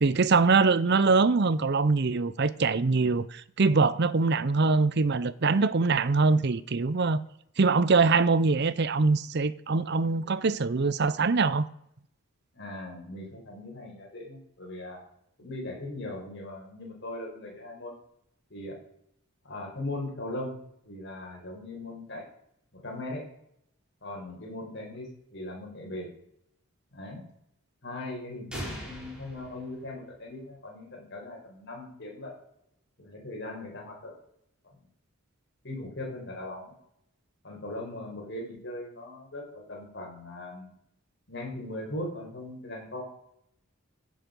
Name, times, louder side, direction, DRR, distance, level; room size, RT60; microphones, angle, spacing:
voice 1, 0.0-7.2 7.6-11.7, right 4 dB, 50° right, 0.6 m, -23 dB
voice 2, 12.5-15.0 15.4-17.9 18.5-18.8 19.4-20.6 20.8-22.2 22.7-23.2 24.0-26.1 26.9-27.2 27.8-32.3 33.0-34.1 35.6-36.7 37.4-40.7 41.3-43.0, left 1 dB, 55° left, 5.0 m, -39 dB
sound 1, 28.5-30.4, equal, 5° right, 3.9 m, -41 dB
15.5 x 8.5 x 5.3 m
head